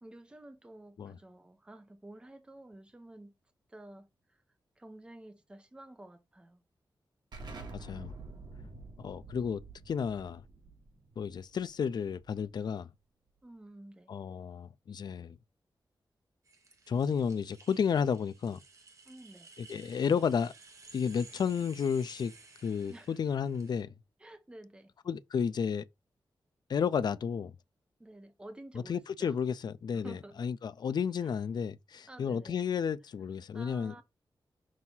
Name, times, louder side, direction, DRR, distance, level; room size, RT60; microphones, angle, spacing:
voice 1, 0.0-3.3 3.7-4.1 4.8-6.6 13.4-14.1 19.0-19.5 22.9-23.1 24.2-24.9 28.0-29.3 29.9-30.5 31.2-31.3 32.1-32.6 33.5-34.0, right 1 dB, 10° right, 0.7 m, -51 dB
Explosion, 7.3-12.7, right 2 dB, 60° right, 1.9 m, -48 dB
voice 2, 7.7-8.1 9.0-9.6 9.9-10.4 11.2-12.9 14.1-15.4 16.9-18.6 19.6-20.5 20.9-22.3 22.6-23.9 25.1-25.8 26.7-27.5 28.7-33.9, left 7 dB, 55° left, 0.4 m, -32 dB
sound 1, 16.5-23.8, right 3 dB, 40° right, 1.2 m, -56 dB
6.2 x 2.8 x 5.5 m
wide cardioid pair, 180°, 8 cm